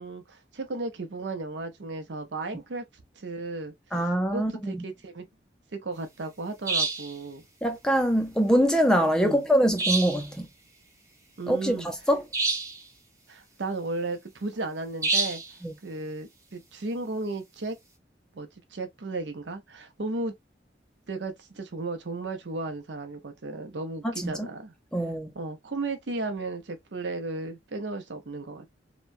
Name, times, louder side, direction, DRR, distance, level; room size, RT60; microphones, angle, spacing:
voice 1, 0.0-2.8 3.2-5.3 5.7-7.4 9.2-9.4 11.4-11.9 13.3-15.4 15.8-17.8 18.3-20.3 21.1-24.7 25.3-28.7, right 3 dB, 75° right, 0.7 m, -34 dB
voice 2, 3.9-4.8 7.6-10.5 11.5-12.2 15.6-15.7 24.0-24.5 24.9-25.3, equal, 5° left, 0.4 m, -24 dB
sound 1, 6.7-7.1 9.8-10.3 12.3-12.8 15.0-15.5, right 3 dB, 15° right, 0.8 m, -27 dB
2.9 x 2.2 x 2.5 m
head